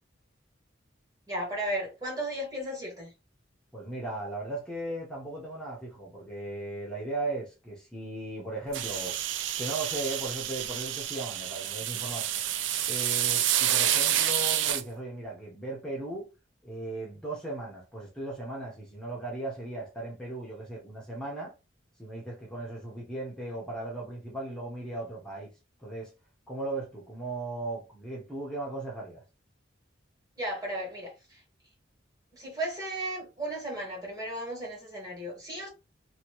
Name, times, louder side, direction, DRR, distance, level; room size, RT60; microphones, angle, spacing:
voice 1, 1.3-3.1 11.9-12.1 30.4-31.4 32.3-35.7, right 1 dB, 20° right, 1.8 m, -35 dB
voice 2, 3.7-9.2 9.6-12.2 12.9-16.3 16.6-21.5 22.0-25.5 25.8-26.1 26.5-29.2, right 2 dB, 5° left, 1.0 m, -37 dB
sound 1, 8.7-14.8, right 11 dB, 70° right, 0.4 m, -28 dB
2.9 x 2.8 x 3.0 m
head